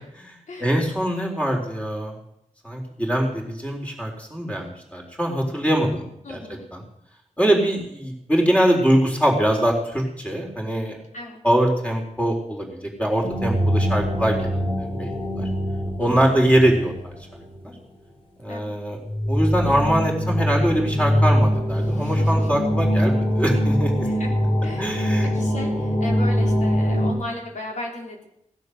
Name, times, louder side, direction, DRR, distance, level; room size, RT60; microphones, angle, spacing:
voice 1, 0.6-2.1 2.6-6.4 6.7-6.8 7.4-11.0 11.4-15.5 16.0-17.1 17.6-17.7 18.4-19.0 19.3-24.1 24.8-25.3, right 1 dB, 10° left, 0 dB, 4.0 m, -23 dB
voice 2, 6.2-6.6 11.1-11.4 16.0-16.2 18.5-18.7 21.8-22.5 24.0-24.3 24.6-28.2, left 2 dB, 85° left, 0 dB, 3.6 m, -36 dB
sound 1, 13.2-17.7 19.0-27.1, equal, 45° left, 4.8 m, -23 dB
17.5 x 11.5 x 6.7 m, 0.76 s
wide cardioid pair, 120°, 12 cm